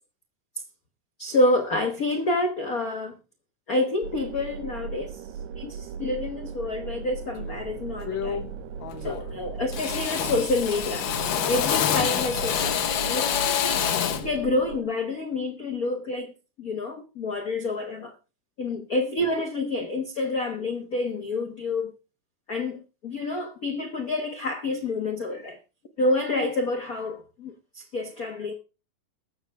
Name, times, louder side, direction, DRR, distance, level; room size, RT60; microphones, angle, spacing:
voice 1, 1.2-3.2 3.7-5.2 5.6-8.5 9.0-11.1 11.5-13.9 14.2-18.1 18.6-21.9 22.5-25.6 26.0-28.5, left 2 dB, 60° left, 0.9 m, -28 dB
sound 1, 4.0-14.8, right 6 dB, 75° right, 2.1 m, -37 dB
Drill, 7.4-7.6 8.0-8.6 8.8-9.4 9.7-14.3, left 9 dB, 85° left, 1.0 m, -27 dB
21.5 x 7.3 x 3.4 m
omnidirectional pair, 3.5 m